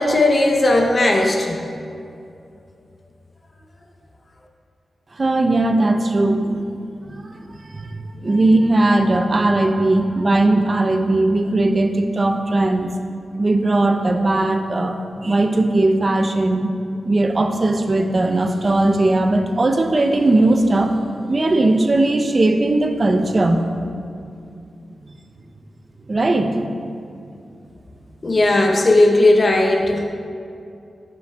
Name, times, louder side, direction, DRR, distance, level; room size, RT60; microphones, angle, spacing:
voice 1, 0.0-1.7 28.2-30.0, left 2 dB, 40° left, 1 dB, 0.6 m, -16 dB
voice 2, 5.1-6.7 7.1-12.9 13.4-16.7 17.0-21.0 21.3-23.7 24.2-24.3 25.0-25.1 26.1-27.0, right 2 dB, 35° right, 5 dB, 0.5 m, -18 dB
9.1 x 5.5 x 2.2 m, 2.5 s
wide cardioid pair, 85°, 0 cm